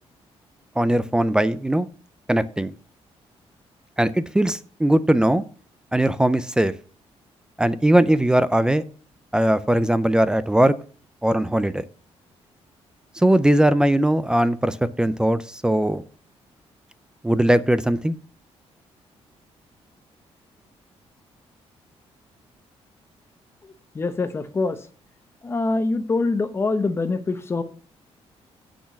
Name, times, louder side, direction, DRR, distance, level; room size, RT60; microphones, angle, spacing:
voice 1, 0.8-1.9 2.3-2.7 4.0-5.4 5.9-6.7 7.6-8.8 9.3-10.8 11.2-11.8 13.2-16.0 17.2-18.2, right 1 dB, 5° right, 0.4 m, -20 dB
voice 2, 23.6-24.9 25.4-27.6, left 3 dB, 20° left, 0.8 m, -25 dB
6.3 x 6.1 x 6.9 m
cardioid pair, 160°, 11 cm